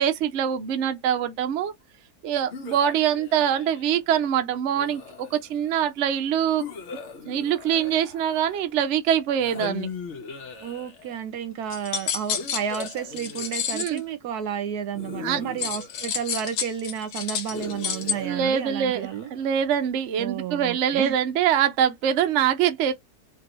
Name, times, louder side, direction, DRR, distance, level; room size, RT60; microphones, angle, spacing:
voice 1, 0.0-1.7 2.2-6.6 7.3-9.9 13.7-14.0 15.2-15.4 18.1-22.9, right 9 dB, 60° right, 0.8 m, -24 dB
sound 1, 2.5-4.0 4.7-5.7 6.6-8.8 9.4-11.2 12.4-14.1 14.9-16.6 17.5-19.5, left 5 dB, 55° left, 1.0 m, -40 dB
voice 2, 10.6-19.3 20.2-21.2, right 8 dB, 80° right, 1.2 m, -31 dB
sound 2, 11.7-14.0 15.6-18.1, left 8 dB, 75° left, 1.1 m, -30 dB
2.9 x 2.6 x 3.0 m
omnidirectional pair, 1.7 m